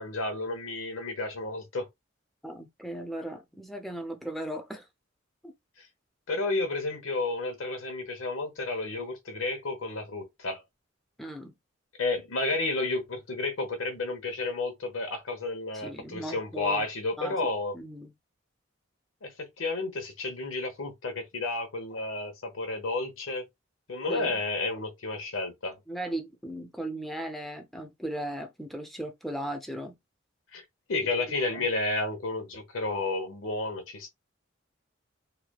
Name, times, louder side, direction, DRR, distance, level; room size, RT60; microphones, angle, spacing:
voice 1, 0.0-1.9 5.8-5.9 6.3-10.6 12.0-17.7 19.2-23.4 23.9-25.8 30.5-30.6 30.9-34.1, left 2 dB, 85° left, 0.9 m, -31 dB
voice 2, 2.4-4.9 5.4-5.5 11.2-11.6 15.7-16.8 17.2-17.4 17.7-18.1 24.1-24.4 25.9-30.0 31.3-31.7, right 1 dB, ahead, 0.5 m, -37 dB
3.1 x 2.1 x 2.3 m
head